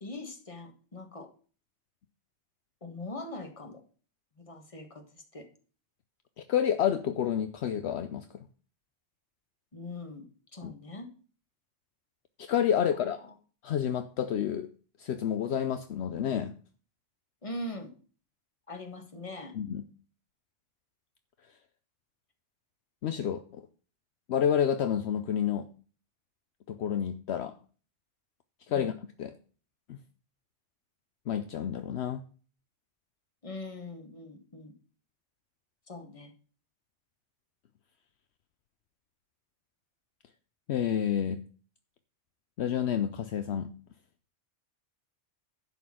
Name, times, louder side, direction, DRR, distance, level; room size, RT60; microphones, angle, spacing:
voice 1, 0.0-1.3 2.8-3.8 4.4-5.5 9.7-10.2 10.5-11.1 12.8-13.3 17.4-17.9 18.7-19.6 28.7-28.9 33.4-34.7 35.9-36.3, left 2 dB, 30° left, 5 dB, 1.5 m, -42 dB
voice 2, 6.5-8.4 10.6-10.7 12.4-13.2 13.6-14.7 15.0-16.5 19.5-19.8 23.0-23.6 24.3-25.7 26.7-27.6 28.7-28.9 29.2-29.3 29.9-30.0 31.3-32.2 40.7-41.4 42.6-43.7, left 9 dB, 70° left, 9 dB, 0.9 m, -29 dB
11.0 x 4.2 x 7.5 m, 0.40 s
omnidirectional pair, 1.2 m